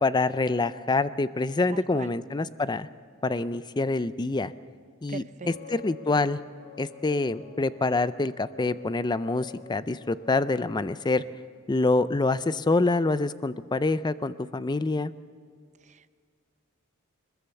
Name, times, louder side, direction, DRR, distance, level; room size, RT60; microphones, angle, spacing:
voice 1, 0.0-2.9 3.2-4.5 5.0-6.4 6.8-11.2 11.7-15.1, left 3 dB, 20° left, 15 dB, 0.5 m, -26 dB
voice 2, 1.7-2.2 5.1-5.8 15.9-16.1, right 4 dB, 35° right, 13 dB, 0.6 m, -42 dB
sound 1, 5.4-11.3, left 9 dB, 45° left, 2.1 m, -48 dB
21.5 x 21.5 x 7.0 m, 2.1 s
head